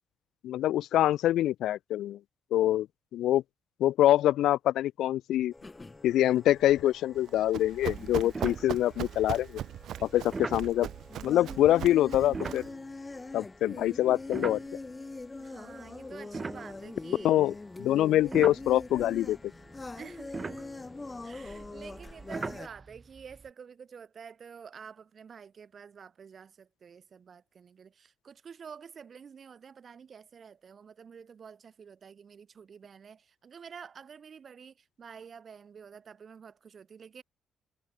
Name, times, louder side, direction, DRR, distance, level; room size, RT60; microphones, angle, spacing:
voice 1, 0.4-2.2 2.5-2.9 3.1-3.4 3.8-5.5 6.0-9.6 10.0-10.9 11.2-12.6 13.3-14.6 17.2-19.4, left 13 dB, 80° left, 0.6 m, -25 dB
sound 1, 5.5-22.7, left 3 dB, 20° left, 1.9 m, -44 dB
Run, 7.2-12.7, right 11 dB, 75° right, 0.8 m, -39 dB
sound 2, 7.5-7.7 8.0-8.1 8.3-9.2 10.3-10.7 12.2-15.1 15.7-17.5 18.0-23.5, right 4 dB, 30° right, 4.6 m, -41 dB
voice 2, 15.4-17.4 18.0-18.1 19.9-20.5 20.8-20.9 21.2-37.2, right 6 dB, 45° right, 4.6 m, -49 dB
cardioid pair, 90°, 0 cm